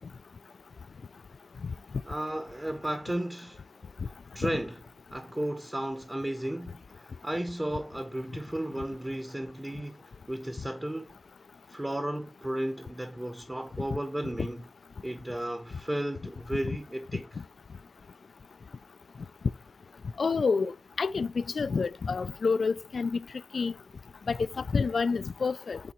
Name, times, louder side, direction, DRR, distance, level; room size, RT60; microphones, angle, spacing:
voice 1, 2.0-3.6 4.0-4.8 5.1-11.1 11.7-14.7 15.0-17.2, right 1 dB, 15° right, 0.8 m, -34 dB
voice 2, 20.2-20.7 21.0-23.2 23.5-23.7 24.3-25.8, left 4 dB, 65° left, 0.3 m, -28 dB
8.3 x 3.8 x 4.3 m
wide cardioid pair, 130°, 0 cm